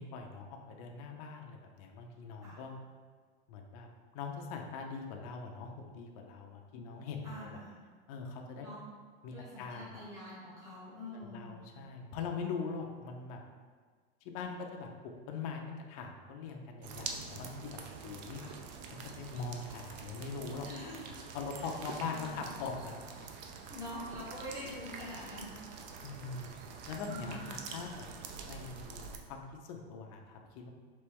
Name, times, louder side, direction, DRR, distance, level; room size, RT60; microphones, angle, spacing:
voice 1, 0.0-2.7 3.5-7.5 8.1-8.7 9.2-10.0 11.1-13.4 14.2-18.4 18.9-20.7 21.3-23.0 26.0-26.6 26.9-28.1 28.4-30.7, left 4 dB, 40° left, 2 dB, 0.4 m, -42 dB
voice 2, 7.2-7.8 8.6-8.8 9.3-11.6 18.4-18.5 20.6-21.2 21.5-21.7 22.1-22.5 23.7-25.5 27.0-27.6, left 1 dB, 10° right, -10 dB, 1.4 m, -46 dB
sound 1, 16.8-29.2, right 5 dB, 45° right, 0.4 m, -46 dB
4.3 x 3.0 x 3.4 m, 1.6 s
supercardioid pair, 160°, 32 cm